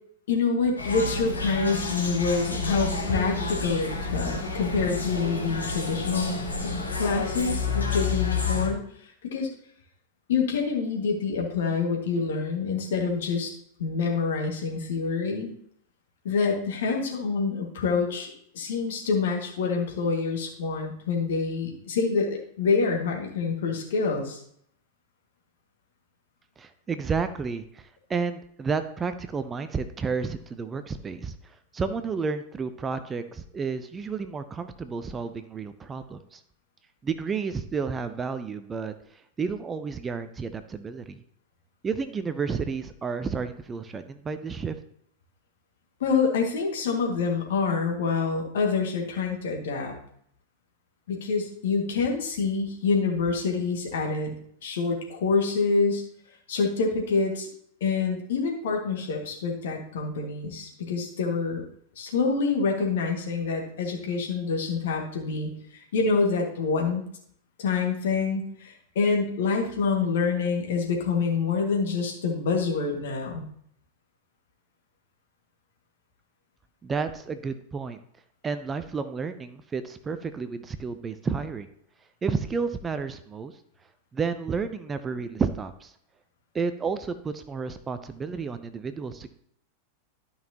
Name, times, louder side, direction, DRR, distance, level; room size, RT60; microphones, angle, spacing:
voice 1, 0.3-6.3 6.6-8.8 9.3-9.5 10.3-13.5 13.8-15.5 16.2-24.4 46.0-50.0 51.1-54.4 54.6-56.0 56.5-57.5 57.8-61.6 62.0-67.0 67.6-73.5, left 4 dB, 60° left, 1 dB, 1.9 m, -26 dB
sound 1, 0.8-8.7, left 3 dB, 75° left, 1.7 m, -29 dB
voice 2, 26.6-36.4 37.0-38.9 39.4-41.2 41.8-44.8 76.8-78.0 78.4-81.7 82.2-83.5 84.1-85.9 86.5-89.3, right 5 dB, 20° right, 10 dB, 0.5 m, -31 dB
12.5 x 5.6 x 2.9 m, 0.66 s
figure-of-eight pair, 90°, 0 cm